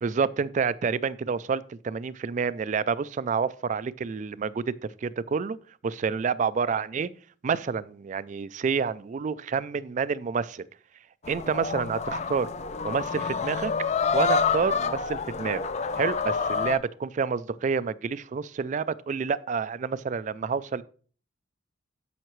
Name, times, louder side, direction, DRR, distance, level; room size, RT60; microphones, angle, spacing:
voice 1, 0.0-4.7 5.0-5.6 5.8-7.1 7.4-10.6 11.3-12.5 12.8-13.7 14.1-15.7 16.0-20.8, right 5 dB, 40° right, 0.3 m, -28 dB
sound 1, 11.2-16.8, left 5 dB, 35° left, 0.4 m, -28 dB
12.0 x 5.7 x 3.1 m
head